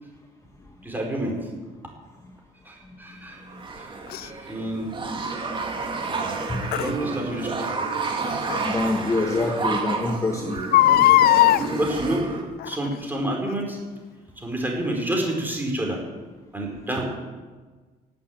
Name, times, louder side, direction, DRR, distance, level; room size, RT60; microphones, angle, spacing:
voice 1, 0.8-1.4 2.6-3.4 3.8-3.9 4.2-5.0 6.7-7.8 11.7-12.3 12.6-13.8 14.4-16.0 16.5-17.0, right 1 dB, 10° right, 0 dB, 5.3 m, -28 dB
sound 1, 3.5-12.4, right 3 dB, 30° right, 3.1 m, -30 dB
Crying sobbing, 4.1-4.3 6.7-6.9 8.5-8.6 9.1-9.2 9.4-9.5 10.6-11.6 12.6-12.9 13.5-13.6, left 14 dB, 65° left, 0.6 m, -17 dB
voice 2, 8.6-10.6, left 2 dB, 20° left, 3 dB, 1.4 m, -25 dB
17.0 x 8.7 x 9.1 m, 1.3 s
cardioid pair, 110°, 17 cm